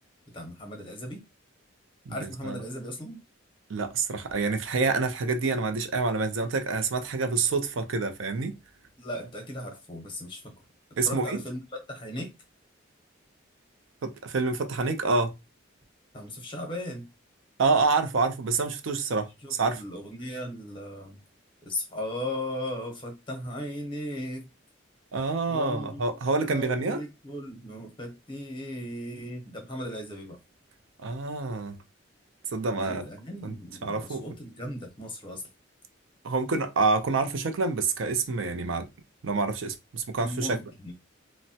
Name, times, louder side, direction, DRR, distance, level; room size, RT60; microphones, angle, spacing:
voice 1, 0.3-1.2 2.1-3.2 9.0-10.5 11.0-11.6 11.9-12.3 16.1-17.0 19.4-21.2 21.6-24.5 25.5-26.1 26.4-30.4 32.7-35.5 40.2-40.9, left 1 dB, 25° left, 0.7 m, -37 dB
voice 2, 2.1-2.6 3.7-8.6 11.0-11.4 14.0-15.3 17.6-19.8 25.1-27.0 31.0-31.8 32.5-33.0 33.4-33.5 33.8-34.2 36.2-38.9 39.2-40.6, right 4 dB, 70° right, 0.5 m, -27 dB
3.1 x 2.0 x 2.7 m
head